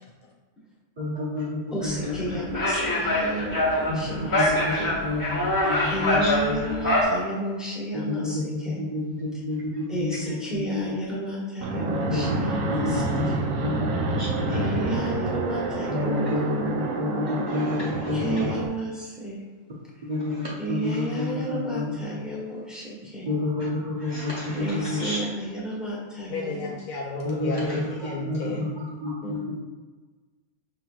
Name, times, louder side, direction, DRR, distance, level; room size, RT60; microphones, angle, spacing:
voice 1, 1.0-2.1 3.9-6.8 7.9-10.6 12.1-12.4 12.7-13.3 13.6-14.7 15.9-18.5 20.1-22.0 23.3-25.2 27.2-29.4, left 2 dB, 45° right, -7 dB, 0.7 m, -30 dB
voice 2, 1.7-5.0 5.6-8.8 9.9-13.5 14.5-16.6 18.1-19.4 20.0-20.1 20.6-23.3 24.5-26.7 28.4-28.6 29.2-29.4, equal, ahead, -7 dB, 1.0 m, -32 dB
sound 1, 1.8-7.0, left 1 dB, 15° left, 1.0 m, -25 dB
Fixed-wing aircraft airplane, 11.6-18.7, right 2 dB, 75° right, 1.0 m, -28 dB
voice 3, 26.3-28.7, left 3 dB, 60° left, -3 dB, 0.5 m, -32 dB
5.6 x 3.1 x 2.4 m, 1.3 s
omnidirectional pair, 1.4 m